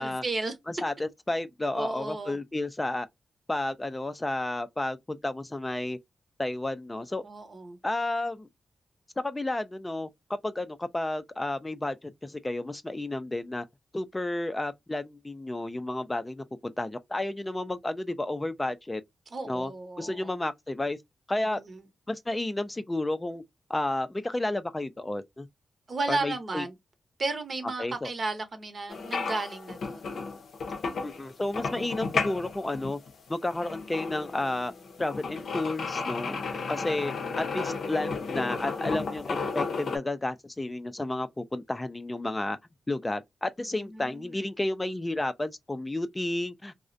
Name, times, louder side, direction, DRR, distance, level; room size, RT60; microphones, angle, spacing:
voice 1, 0.0-0.6 1.7-2.4 7.2-7.8 19.3-20.4 21.4-21.8 25.9-26.7 27.2-30.1 36.5-37.6 43.7-44.3, right 3 dB, 50° right, 0.8 m, -34 dB
voice 2, 0.7-3.1 3.5-6.0 6.4-7.2 7.8-8.5 9.2-10.1 10.4-13.6 13.9-19.0 19.4-19.7 20.0-21.0 21.3-21.6 22.1-23.4 23.7-25.5 26.1-26.6 27.8-28.1 31.0-33.0 33.3-34.7 35.0-36.4 36.7-42.6 42.9-46.7, left 2 dB, 20° left, 0.3 m, -31 dB
sound 1, 28.9-40.0, left 4 dB, 75° left, 0.5 m, -33 dB
2.4 x 2.0 x 2.5 m
cardioid pair, 60°, 0 cm